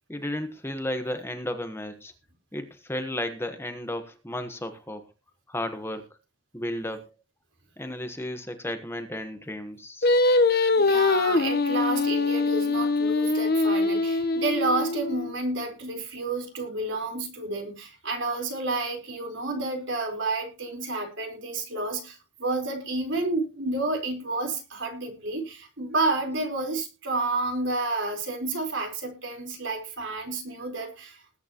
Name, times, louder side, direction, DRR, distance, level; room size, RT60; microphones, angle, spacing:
voice 1, 0.1-2.1 2.5-5.0 5.5-6.0 6.5-7.1 7.8-10.1, left 1 dB, 10° left, 7 dB, 1.2 m, -33 dB
Singing, 10.0-15.3, left 3 dB, 50° left, 1.0 m, -23 dB
voice 2, 10.8-31.4, right 2 dB, 65° right, 4 dB, 4.2 m, -30 dB
20.5 x 9.4 x 3.0 m, 0.30 s
head